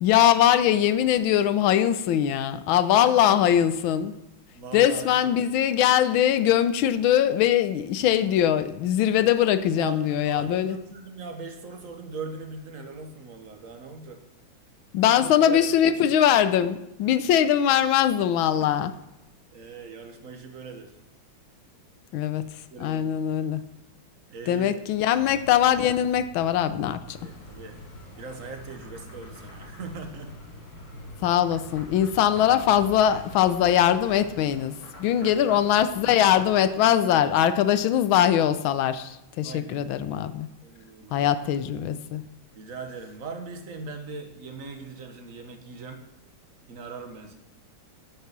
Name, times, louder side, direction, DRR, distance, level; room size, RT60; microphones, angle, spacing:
voice 1, 0.0-4.2 4.7-10.8 14.9-18.9 22.1-22.4 22.8-23.6 24.5-27.2 31.2-40.5 41.1-42.2, left 10 dB, 80° left, 13 dB, 1.5 m, -22 dB
voice 2, 3.0-3.5 4.5-5.4 9.7-14.2 15.2-15.6 16.0-16.1 18.4-18.7 19.5-20.9 22.7-23.4 24.3-24.7 25.0-25.1 27.2-27.8 28.2-30.3 35.2-35.3 35.9-36.0 39.4-40.0 40.6-41.4 42.5-46.0 46.7-47.4, right 4 dB, 45° right, 5 dB, 1.5 m, -40 dB
sound 1, 25.2-34.5, left 1 dB, 20° left, 2.0 m, -47 dB
sound 2, 27.0-36.7, left 2 dB, 55° left, 3.1 m, -47 dB
12.0 x 6.7 x 6.0 m, 0.88 s
omnidirectional pair, 2.2 m